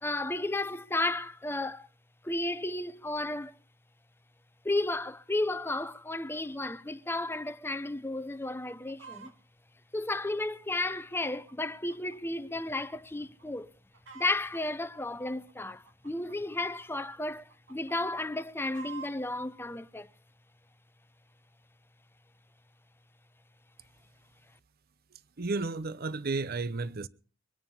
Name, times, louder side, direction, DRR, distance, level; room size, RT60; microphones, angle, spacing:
voice 1, 0.0-1.9 2.2-3.6 4.6-9.3 9.9-13.7 14.1-20.1, left 2 dB, 10° left, 0.8 m, -33 dB
Chicken rooster, 8.5-9.3 10.0-12.2 12.5-12.6 13.2-13.4 13.7-14.6 15.3-17.1 17.5-19.3 20.0-20.1, right 5 dB, 75° right, 2.2 m, -49 dB
voice 2, 25.1-27.1, right 3 dB, 50° right, 0.8 m, -33 dB
23.5 x 9.6 x 5.6 m
head